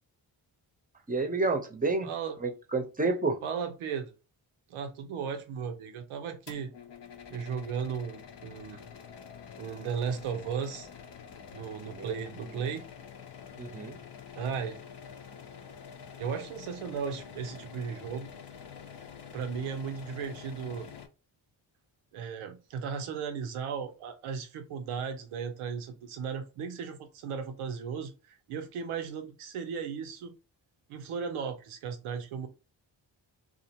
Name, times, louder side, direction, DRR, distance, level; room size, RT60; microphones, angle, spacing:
voice 1, 1.1-2.1 2.4-3.4 11.9-12.1 13.6-14.0, right 3 dB, 15° right, 0.7 m, -29 dB
voice 2, 2.0-2.3 3.4-4.1 4.7-6.7 7.3-8.9 9.6-10.9 11.5-12.8 14.4-14.8 16.2-18.3 19.3-20.9 22.1-30.3 30.9-32.5, right 6 dB, 90° right, 0.6 m, -36 dB
sound 1, 6.5-21.1, left 7 dB, 55° left, 0.7 m, -47 dB
2.4 x 2.1 x 2.8 m
supercardioid pair, 40°, 49 cm